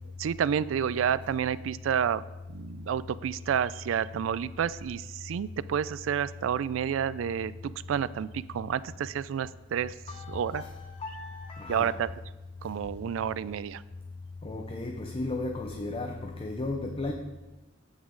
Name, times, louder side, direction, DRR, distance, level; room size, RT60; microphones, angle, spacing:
voice 1, 0.2-2.2 2.5-10.0 10.3-10.6 11.7-12.1 12.6-13.8, right 8 dB, 80° right, 18 dB, 0.3 m, -30 dB
voice 2, 10.1-11.9 14.4-17.1, left 2 dB, 30° left, 3 dB, 0.6 m, -35 dB
9.4 x 8.2 x 3.8 m, 1.1 s
head